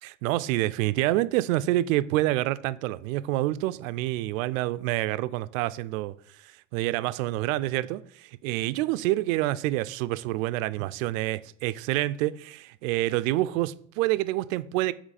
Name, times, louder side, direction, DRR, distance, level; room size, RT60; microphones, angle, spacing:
voice 1, 0.0-14.9, right 16 dB, 85° right, 0.5 m, -27 dB
8.0 x 3.2 x 4.1 m
supercardioid pair, 95°, 39 cm